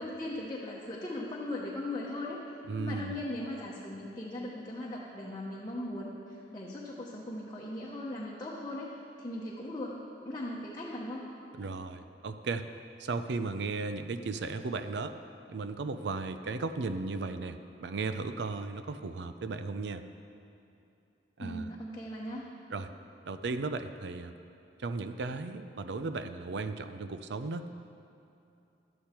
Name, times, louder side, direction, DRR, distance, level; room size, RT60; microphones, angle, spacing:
voice 1, 0.0-2.4 2.8-8.9 9.2-9.9 10.2-11.2 21.4-22.4, left 1 dB, 25° left, -5 dB, 0.9 m, -38 dB
voice 2, 2.7-3.2 11.6-12.7 13.0-15.1 15.5-20.0 21.4-21.7 22.7-22.9 23.2-24.3 24.8-27.7, right 3 dB, 70° right, 10 dB, 0.5 m, -35 dB
12.0 x 8.6 x 4.4 m, 2.7 s
head